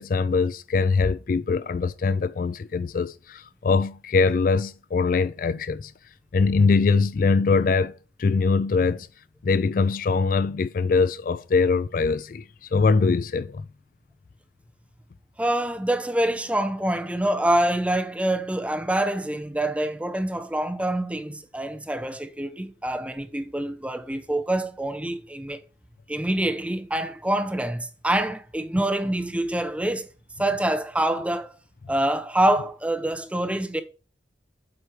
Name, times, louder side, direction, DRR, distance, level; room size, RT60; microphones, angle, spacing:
voice 1, 0.0-5.9 6.3-7.9 8.2-9.1 9.4-13.7, left 4 dB, 50° left, 0.3 m, -22 dB
voice 2, 15.4-25.6 26.1-30.1 30.4-31.5 31.9-33.8, right 1 dB, 5° right, 0.6 m, -26 dB
7.8 x 4.5 x 4.9 m
head